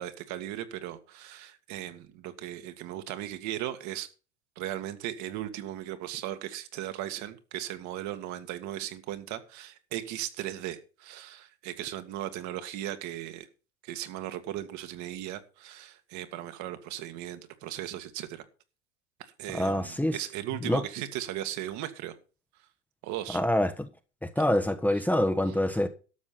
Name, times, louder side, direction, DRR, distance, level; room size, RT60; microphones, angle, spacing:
voice 1, 0.0-4.1 4.6-13.5 13.8-18.4 19.2-22.1 23.0-23.4 24.4-24.5, right 13 dB, 55° right, 2.1 m, -37 dB
voice 2, 19.5-20.2 20.6-20.8 23.3-23.9 24.2-25.9, left 1 dB, 5° left, 1.1 m, -26 dB
12.5 x 7.2 x 5.9 m
hypercardioid pair, 90°, 35 cm